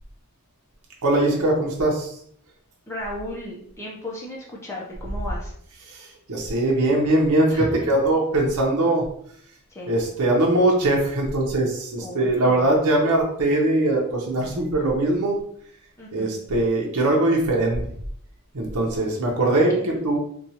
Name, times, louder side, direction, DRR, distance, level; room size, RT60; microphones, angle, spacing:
voice 1, 1.0-2.2 5.9-9.0 9.9-15.4 16.1-17.8 18.5-20.2, right 2 dB, 85° right, -1 dB, 0.8 m, -21 dB
voice 2, 2.9-5.5 7.5-7.9 9.7-10.0 12.0-12.7 16.0-16.3 19.7-20.0, equal, 10° left, -4 dB, 0.6 m, -34 dB
4.3 x 2.3 x 2.8 m, 0.65 s
head